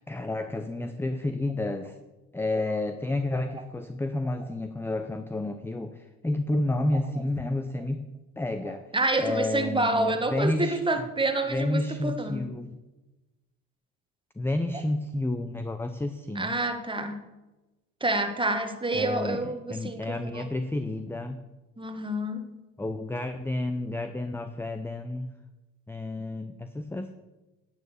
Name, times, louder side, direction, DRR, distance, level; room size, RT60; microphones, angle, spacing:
voice 1, 0.0-2.0 2.3-8.0 8.4-8.8 9.2-10.8 11.5-12.8 14.4-16.5 18.9-21.4 22.8-25.3 25.9-27.1, left 2 dB, 5° left, 9 dB, 0.7 m, -30 dB
voice 2, 8.7-12.5 16.3-17.2 18.0-20.5 21.8-22.4, right 2 dB, 10° right, 7 dB, 1.7 m, -28 dB
10.5 x 8.9 x 6.6 m, 1.1 s
hypercardioid pair, 70°, 40 cm